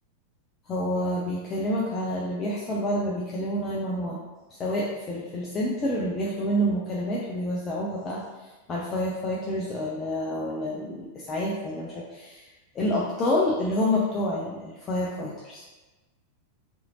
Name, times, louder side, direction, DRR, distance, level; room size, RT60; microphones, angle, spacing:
voice 1, 0.7-4.2 4.5-12.5 12.7-15.6, left 1 dB, 25° left, -5 dB, 0.4 m, -28 dB
2.7 x 2.6 x 2.8 m, 1.2 s
figure-of-eight pair, 90°, 0 cm